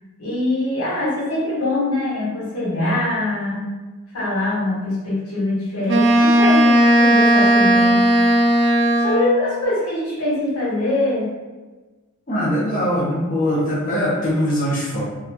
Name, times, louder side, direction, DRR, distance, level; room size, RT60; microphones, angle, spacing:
voice 1, 0.2-3.6 4.1-8.0 9.0-11.3, left 1 dB, 85° left, -6 dB, 1.3 m, -23 dB
Wind instrument woodwind instrument, 5.9-9.4, right 1 dB, 55° right, 0.4 m, -15 dB
voice 2, 12.3-15.0, equal, 35° left, -7 dB, 0.8 m, -21 dB
3.8 x 2.3 x 2.8 m, 1.2 s
head